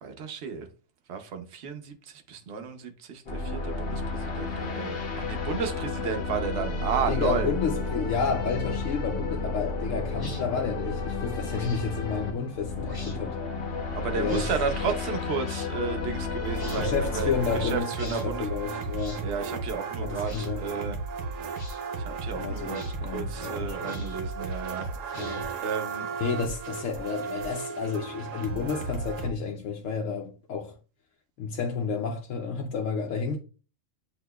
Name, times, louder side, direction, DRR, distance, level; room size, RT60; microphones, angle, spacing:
voice 1, 0.0-0.7 1.1-7.5 14.0-18.5 19.2-21.0 22.1-26.1, right 6 dB, 60° right, 1.0 m, -33 dB
sound 1, 3.3-17.8, left 3 dB, 55° left, 1.0 m, -32 dB
voice 2, 7.1-13.4 14.1-14.5 16.7-19.3 20.0-20.7 22.3-24.2 25.1-25.5 26.2-30.8 31.4-33.4, left 5 dB, 80° left, 1.0 m, -31 dB
sound 2, 10.1-10.4 11.5-11.8 12.8-13.2 14.3-14.5 15.4-15.7 16.5-16.9 17.9-18.3 19.0-19.2 20.2-20.5 21.5-21.8 22.7-23.0 23.8-24.3 25.1-25.6, left 2 dB, 25° left, 0.6 m, -46 dB
sound 3, 16.4-29.3, right 4 dB, 90° right, 1.1 m, -34 dB
7.9 x 2.8 x 2.2 m
omnidirectional pair, 1.3 m